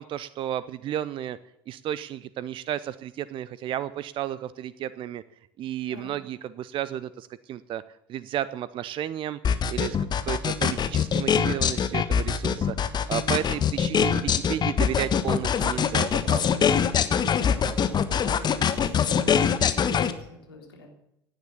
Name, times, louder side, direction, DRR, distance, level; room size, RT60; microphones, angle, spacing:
voice 1, 0.0-1.4 1.7-5.2 5.6-7.8 8.1-9.4 9.7-10.0 10.2-12.8 13.1-16.5, right 11 dB, 45° right, 17 dB, 0.7 m, -32 dB
sound 1, 9.4-20.1, left 7 dB, 35° left, 1.3 m, -23 dB
voice 2, 13.3-13.7 17.2-20.9, left 4 dB, 80° left, 1 dB, 3.6 m, -44 dB
17.0 x 10.0 x 6.9 m, 0.80 s
figure-of-eight pair, 65°, 12 cm